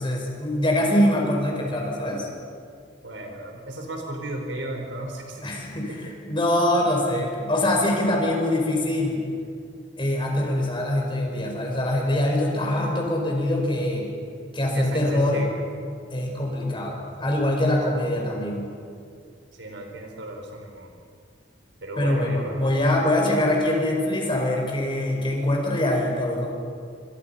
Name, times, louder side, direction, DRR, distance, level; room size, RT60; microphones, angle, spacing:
voice 1, 0.0-2.3 5.4-9.2 10.0-14.1 14.5-15.4 16.1-18.7 22.0-26.5, left 1 dB, 25° left, 0 dB, 5.3 m, -24 dB
voice 2, 3.0-6.0 14.7-15.6 19.6-20.9 21.8-22.6, right 1 dB, 85° right, 2 dB, 5.0 m, -35 dB
28.5 x 25.0 x 5.8 m, 2.3 s
head